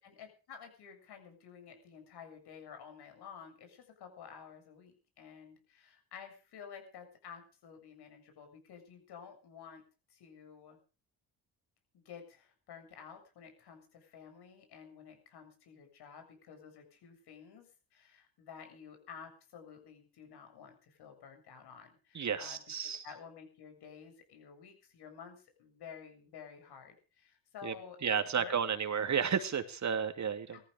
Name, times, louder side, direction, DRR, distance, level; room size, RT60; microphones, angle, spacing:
voice 1, 0.0-9.8 10.1-10.8 11.9-22.6 23.0-28.0 28.4-28.6 30.5-30.6, left 7 dB, 70° left, 6 dB, 7.3 m, -52 dB
voice 2, 22.1-23.0 27.6-27.7 28.0-30.6, right 7 dB, 45° right, 8 dB, 2.7 m, -32 dB
17.5 x 14.5 x 5.1 m, 0.36 s
supercardioid pair, 75°, 40 cm